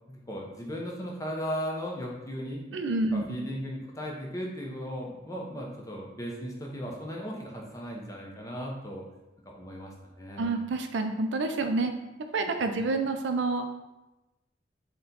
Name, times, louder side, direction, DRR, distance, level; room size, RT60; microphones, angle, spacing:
voice 1, 0.1-2.6 3.1-9.0 9.5-10.5 12.6-12.8, equal, 20° left, -1 dB, 0.6 m, -37 dB
voice 2, 2.7-3.4 10.4-11.9 12.3-14.0, right 3 dB, 75° right, 6 dB, 0.4 m, -28 dB
4.1 x 2.2 x 3.9 m, 1.0 s
head